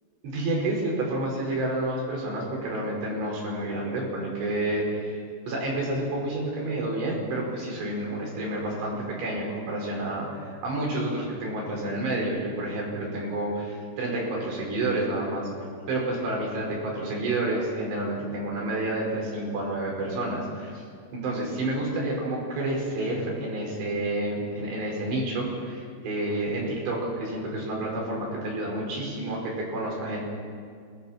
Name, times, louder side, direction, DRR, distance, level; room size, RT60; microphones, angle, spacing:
voice 1, 0.2-15.5 15.9-20.8 21.1-30.2, right 1 dB, 70° right, -2 dB, 7.3 m, -29 dB
30.0 x 22.0 x 4.5 m, 2.1 s
omnidirectional pair, 5.1 m